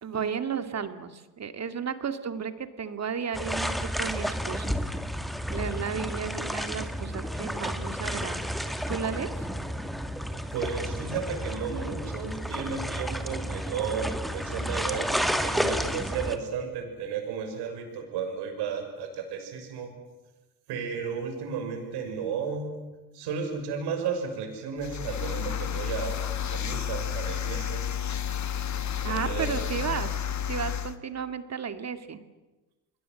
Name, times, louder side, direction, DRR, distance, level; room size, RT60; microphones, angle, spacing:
voice 1, 0.0-4.7 5.5-8.4 8.9-9.5 29.0-32.2, right 7 dB, 40° right, 10 dB, 2.3 m, -33 dB
sound 1, 3.3-16.4, equal, ahead, 2.2 m, -31 dB
voice 2, 10.5-19.9 20.7-22.8 23.1-26.2 26.5-27.9 29.1-29.9, right 6 dB, 75° right, 5 dB, 6.5 m, -33 dB
sound 2, 24.8-30.9, left 9 dB, 45° left, 1.7 m, -31 dB
29.5 x 21.5 x 7.8 m, 1.1 s
supercardioid pair, 80°, 40 cm